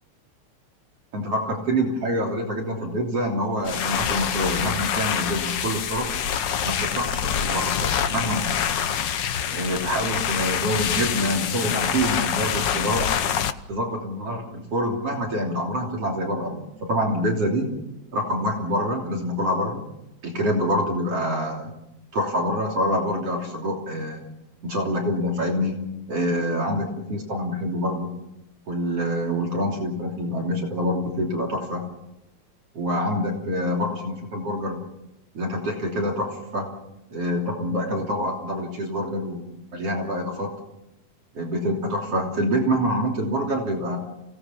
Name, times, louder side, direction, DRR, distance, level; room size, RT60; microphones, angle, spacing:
voice 1, 1.1-6.1 6.6-8.6 9.5-13.1 13.7-17.7 18.1-19.8 20.2-21.7 22.1-24.2 24.6-25.8 26.1-28.2 28.7-31.8 32.7-34.8 35.3-36.7 37.1-39.5 39.7-40.5 41.3-44.0, equal, 55° right, 0 dB, 4.1 m, -26 dB
sound 1, 3.6-13.5, left 8 dB, 70° left, 1.0 m, -26 dB
28.5 x 18.5 x 7.2 m, 0.90 s
omnidirectional pair, 3.4 m